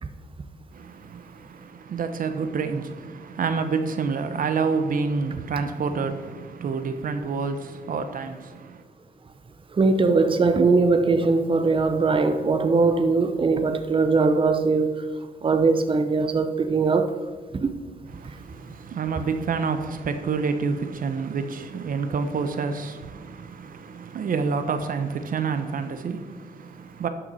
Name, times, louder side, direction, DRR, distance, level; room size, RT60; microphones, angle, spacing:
voice 1, 0.7-8.8 18.1-27.1, right 5 dB, 65° right, 0.7 m, -28 dB
voice 2, 9.7-15.1 15.4-17.2 17.5-17.7 18.2-18.3, right 4 dB, 35° right, 0.7 m, -21 dB
12.0 x 5.9 x 4.1 m
cardioid pair, 85°, 15 cm